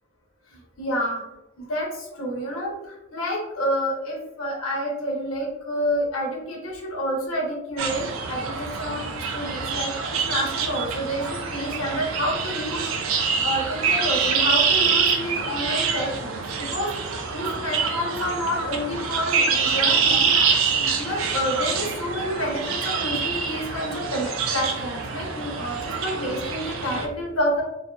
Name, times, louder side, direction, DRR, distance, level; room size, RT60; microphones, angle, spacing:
voice 1, 0.8-1.2 1.6-12.8 13.4-16.9 17.3-20.3 20.8-27.6, equal, 90° left, -1 dB, 0.9 m, -29 dB
sound 1, 7.8-27.1, right 5 dB, 70° right, 0.4 m, -25 dB
2.8 x 2.6 x 2.3 m, 0.93 s
head